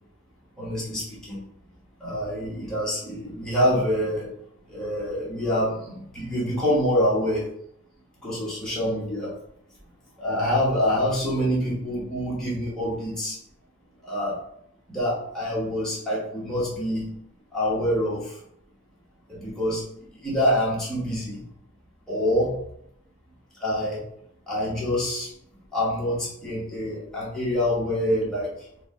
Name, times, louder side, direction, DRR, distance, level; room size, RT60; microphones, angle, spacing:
voice 1, 0.6-1.4 2.0-4.3 4.7-7.5 8.2-9.3 10.2-13.4 14.1-14.4 14.9-17.1 17.5-18.2 19.3-19.8 20.2-21.4 22.1-22.5 23.6-24.0 24.5-25.3 25.7-28.5, equal, 5° left, -8 dB, 1.1 m, -26 dB
4.7 x 2.3 x 3.6 m, 0.72 s
head